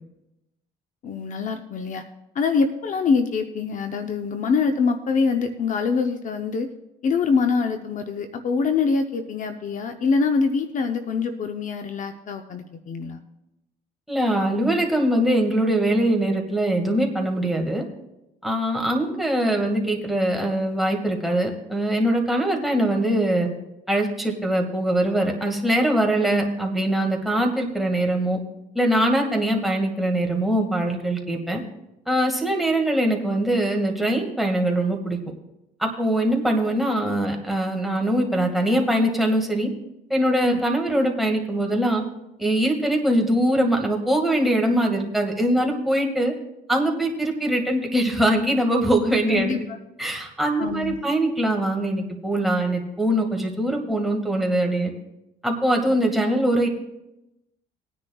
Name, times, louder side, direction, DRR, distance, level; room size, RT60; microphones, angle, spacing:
voice 1, 1.0-2.0 2.3-6.7 7.0-13.2 40.4-40.6 49.3-49.8 50.6-51.0, left 5 dB, 50° left, 7 dB, 0.7 m, -24 dB
voice 2, 14.1-17.8 18.4-23.5 23.9-28.4 28.8-31.6 32.1-35.2 35.8-39.7 40.1-42.0 42.4-46.3 46.7-49.6 50.0-54.9 55.4-56.7, right 1 dB, ahead, 1 dB, 1.9 m, -22 dB
19.5 x 9.8 x 2.3 m, 0.92 s
cardioid pair, 110°, 17 cm